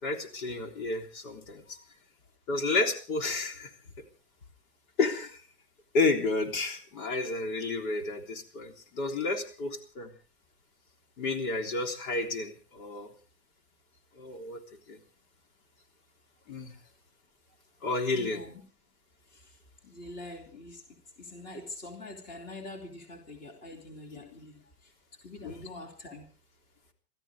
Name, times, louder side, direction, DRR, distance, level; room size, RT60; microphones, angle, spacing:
voice 1, 0.0-1.8 2.5-3.7 5.0-5.4 5.9-10.1 11.2-13.1 14.2-14.6 14.9-15.0 16.5-16.7 17.8-18.4 24.2-24.3 25.4-25.6, left 3 dB, 60° left, 4 dB, 3.7 m, -31 dB
voice 2, 18.1-18.6 19.3-19.4 19.8-20.8 21.2-24.6 25.2-26.3, left 2 dB, 20° left, 3 dB, 2.8 m, -44 dB
29.5 x 13.5 x 3.6 m, 0.37 s
supercardioid pair, 160°, 46 cm